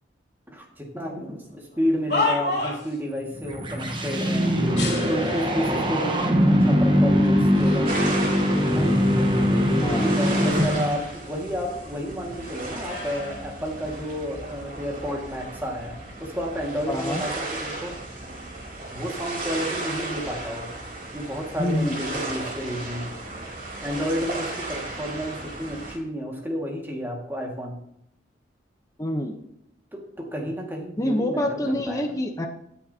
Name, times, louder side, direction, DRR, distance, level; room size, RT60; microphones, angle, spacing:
voice 1, 0.5-4.5 5.1-7.9 8.6-8.9 9.9-18.0 18.9-20.7 21.1-23.1 23.8-27.8 29.9-32.1, equal, 10° right, -1 dB, 1.9 m, -31 dB
sound 1, 1.7-3.0 4.7-5.6 6.4-6.5 7.2-7.9 8.4-9.8 10.2-11.9 12.1-14.3 15.0-15.3, left 3 dB, 60° left, 3.5 m, -32 dB
sound 2, 3.2-11.0, equal, 25° right, 1.1 m, -21 dB
sound 3, 7.8-26.0, right 2 dB, 45° right, 2.9 m, -35 dB
voice 2, 16.9-17.2 21.6-22.0 29.0-29.3 31.0-32.5, left 1 dB, 20° left, 2 dB, 0.8 m, -26 dB
17.5 x 6.8 x 2.8 m, 0.76 s
head